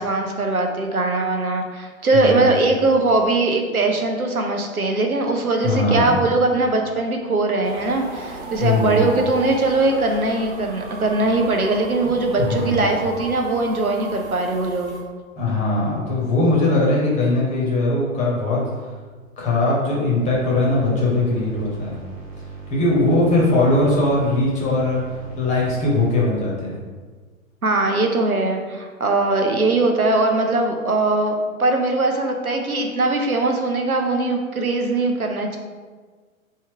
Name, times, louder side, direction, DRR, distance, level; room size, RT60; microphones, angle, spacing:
voice 1, 0.0-15.0 27.6-31.3 31.6-35.6, right 2 dB, 90° right, 3 dB, 0.7 m, -21 dB
voice 2, 2.1-2.5 5.6-6.2 8.6-9.1 12.4-12.9 15.4-18.7 19.4-21.9 22.7-25.0 25.4-26.8, left 2 dB, 15° left, -5 dB, 1.1 m, -20 dB
sound 1, 7.6-15.0, right 2 dB, 50° right, 1.0 m, -35 dB
sound 2, 20.2-26.2, right 4 dB, 15° right, 0.6 m, -38 dB
3.5 x 2.8 x 4.5 m, 1.4 s
figure-of-eight pair, 110°, 42 cm